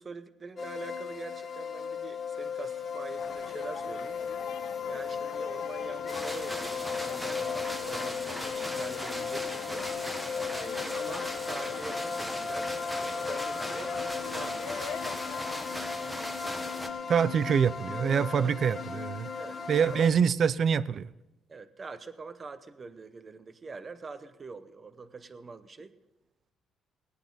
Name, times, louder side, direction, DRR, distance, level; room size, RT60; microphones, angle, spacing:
voice 1, 0.0-4.2 4.9-9.9 10.5-15.0 15.9-16.8 18.4-18.5 19.4-20.0 21.5-25.9, right 4 dB, 25° right, 0.8 m, -44 dB
sound 1, 0.6-20.1, left 6 dB, 30° left, 1.2 m, -36 dB
sound 2, 3.2-15.8, left 8 dB, 85° left, 0.9 m, -44 dB
sound 3, 6.1-16.9, equal, ahead, 1.2 m, -38 dB
voice 2, 17.1-19.3 19.7-21.1, right 7 dB, 40° right, 0.4 m, -25 dB
18.0 x 11.5 x 3.9 m
cardioid pair, 160°, 0 cm